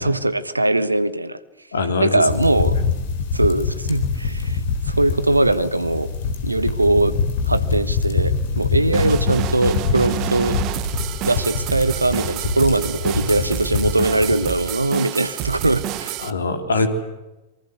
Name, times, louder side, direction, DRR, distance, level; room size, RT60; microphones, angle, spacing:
voice 1, 0.0-1.4 2.0-2.8 3.3-4.6 4.9-6.1 6.4-7.1 7.5-10.6 11.2-16.2, right 2 dB, 85° right, 16 dB, 1.2 m, -20 dB
voice 2, 1.7-2.2 16.2-16.9, left 4 dB, 70° left, 8 dB, 3.5 m, -22 dB
sound 1, 2.3-14.5, left 5 dB, 55° left, 3.9 m, -24 dB
sound 2, 8.9-16.3, right 16 dB, 40° right, 1.1 m, -29 dB
27.0 x 23.5 x 8.1 m, 1.0 s
figure-of-eight pair, 90°, 0 cm